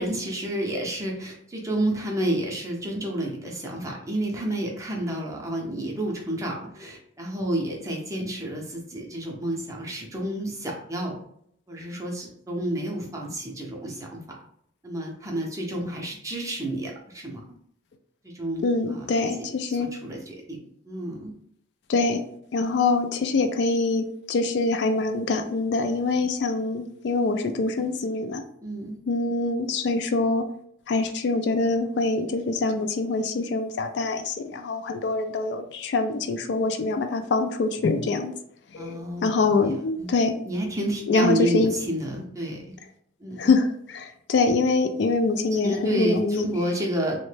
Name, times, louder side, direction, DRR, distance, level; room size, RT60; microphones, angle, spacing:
voice 1, 0.0-11.1 11.7-14.2 14.8-17.4 18.2-18.6 18.9-19.1 19.7-20.6 20.9-21.3 28.6-29.0 38.8-39.7 40.0-40.1 40.5-42.6 43.2-43.5 45.5-47.2, right 1 dB, 15° right, -1 dB, 0.5 m, -30 dB
voice 2, 18.6-19.9 21.9-22.2 22.5-28.4 29.1-30.5 30.9-38.3 38.7-40.3 41.1-41.7 43.4-46.5, left 3 dB, 60° left, 7 dB, 0.3 m, -24 dB
3.1 x 2.1 x 3.2 m, 0.68 s
head